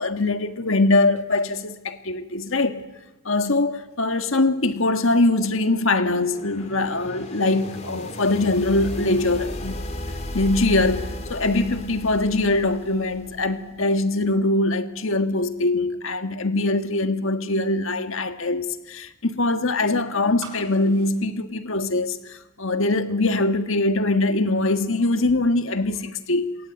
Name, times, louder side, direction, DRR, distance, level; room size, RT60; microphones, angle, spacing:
voice 1, 0.0-2.8 3.3-9.8 10.3-26.6, left 2 dB, 65° left, 1.6 m, -22 dB
sound 1, 5.3-13.7, left 1 dB, 30° left, 3.1 m, -35 dB
sound 2, 20.4-22.4 22.7-22.8, right 4 dB, 75° right, 6.2 m, -43 dB
26.5 x 22.0 x 9.2 m
head